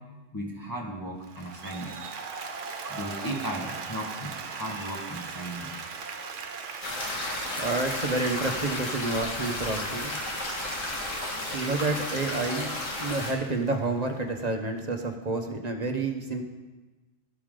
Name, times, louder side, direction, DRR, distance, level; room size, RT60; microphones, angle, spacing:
voice 1, 0.3-1.9 2.9-5.7, right 1 dB, 15° left, -2 dB, 1.4 m, -36 dB
Applause, 1.2-14.4, right 5 dB, 75° right, 1.2 m, -40 dB
sound 1, 6.8-13.3, left 2 dB, 90° left, 2.2 m, -33 dB
voice 2, 7.6-10.1 11.5-16.4, right 3 dB, 35° right, 3 dB, 1.1 m, -29 dB
12.5 x 11.5 x 3.8 m, 1.2 s
omnidirectional pair, 1.3 m